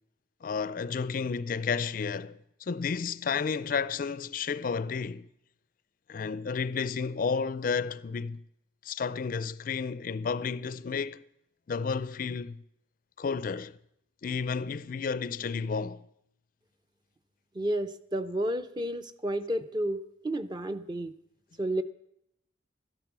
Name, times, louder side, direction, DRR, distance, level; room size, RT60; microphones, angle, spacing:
voice 1, 0.4-5.3 6.1-8.4 8.8-11.2 11.7-12.6 13.2-13.7 14.2-16.0, left 5 dB, 50° left, 0.4 m, -32 dB
voice 2, 17.5-21.1 21.6-21.8, right 1 dB, 25° right, 0.6 m, -31 dB
13.0 x 11.0 x 6.0 m
head